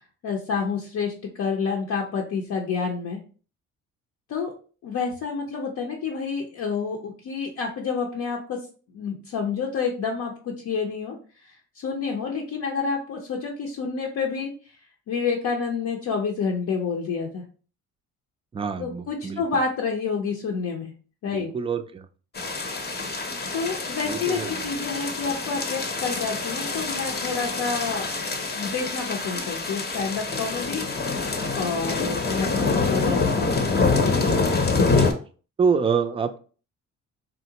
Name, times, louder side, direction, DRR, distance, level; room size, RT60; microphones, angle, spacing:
voice 1, 0.2-3.2 4.3-4.5 4.8-8.6 8.9-11.2 11.4-14.5 15.1-17.4 18.8-20.9 21.2-21.5 23.5-30.9 31.5-33.6, left 5 dB, 70° left, 0 dB, 0.7 m, -29 dB
voice 2, 18.5-19.4 21.3-22.1 24.1-24.7 34.8-35.1 35.6-36.4, right 5 dB, 20° right, 8 dB, 0.3 m, -26 dB
sound 1, 22.3-35.1, left 4 dB, 35° left, 0.7 m, -26 dB
3.7 x 2.1 x 2.8 m, 0.38 s
cardioid pair, 90°, 30 cm